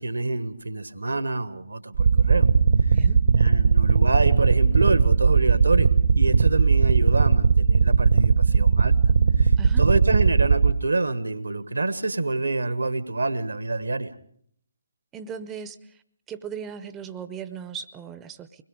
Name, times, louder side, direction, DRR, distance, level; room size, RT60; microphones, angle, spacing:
voice 1, 0.0-2.5 2.8-3.0 3.4-5.9 6.2-9.0 9.4-14.1, right 2 dB, 70° right, 13 dB, 1.4 m, -27 dB
sound 1, 1.9-10.7, right 5 dB, 55° right, 1.1 m, -18 dB
voice 2, 15.1-16.0 16.3-18.6, right 7 dB, 15° right, 12 dB, 0.7 m, -37 dB
24.0 x 21.0 x 5.2 m, 0.64 s
figure-of-eight pair, 140°, 0 cm